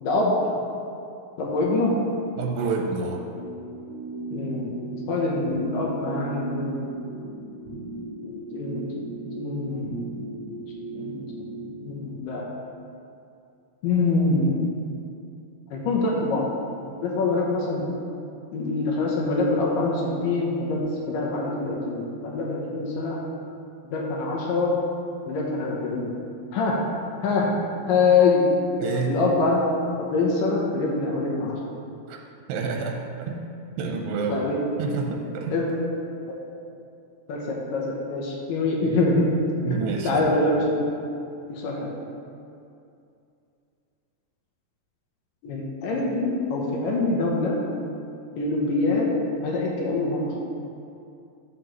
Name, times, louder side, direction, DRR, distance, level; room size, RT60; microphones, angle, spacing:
voice 1, 0.0-0.3 1.4-2.0 4.3-4.8 5.1-6.8 8.2-10.0 10.9-11.2 11.8-12.5 13.8-14.6 15.7-16.5 17.0-17.8 18.5-23.2 23.9-24.8 25.3-26.1 26.5-26.8 27.2-27.5 27.9-28.5 29.1-29.7 30.0-31.6 34.3-34.6 35.5-35.7 37.3-39.3 39.7-39.8 40.0-40.8 41.5-42.0 45.4-47.6 48.4-49.1 49.4-50.4, left 3 dB, 75° left, -2 dB, 2.5 m, -24 dB
voice 2, 2.4-3.2 28.8-29.2 32.1-32.2 32.5-33.0 33.3-33.4 33.8-34.4 34.8-35.7 39.6-40.2, right 4 dB, 85° right, 1 dB, 2.5 m, -28 dB
sound 1, 3.3-12.0, right 2 dB, 35° right, 1.9 m, -37 dB
11.5 x 6.3 x 3.1 m, 2.6 s
omnidirectional pair, 4.1 m